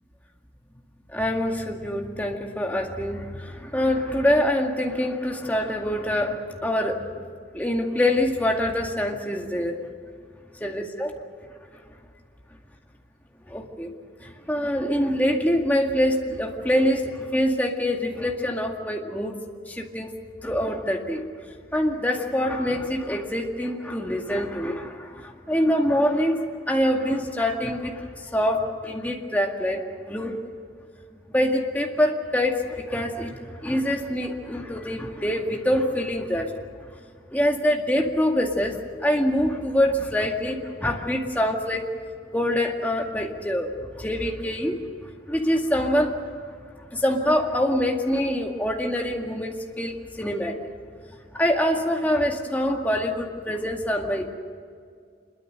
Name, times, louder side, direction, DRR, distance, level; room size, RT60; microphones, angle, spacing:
voice 1, 1.1-7.2 7.5-9.7 10.6-11.1 13.5-13.9 14.2-19.3 19.7-20.1 20.4-21.2 21.7-28.1 28.3-29.8 30.1-30.4 31.3-36.5 37.3-41.9 42.3-43.7 44.0-44.8 45.3-46.2 46.9-50.5 51.3-54.3, equal, 10° left, 1 dB, 2.0 m, -25 dB
25.5 x 22.5 x 6.7 m, 2.2 s
head